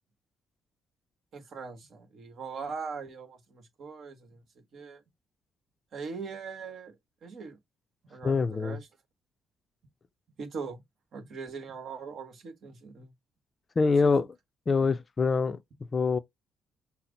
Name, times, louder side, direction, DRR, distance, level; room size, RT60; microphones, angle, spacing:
voice 1, 1.3-4.4 4.7-5.0 5.9-7.0 7.2-7.6 8.1-8.9 10.4-10.8 11.1-13.1 14.0-14.1, right 5 dB, 60° right, 1.3 m, -41 dB
voice 2, 8.2-8.8 13.8-14.3 14.7-15.6 15.9-16.2, left 4 dB, 35° left, 0.4 m, -24 dB
5.7 x 2.0 x 3.9 m
cardioid pair, 90°, 0 cm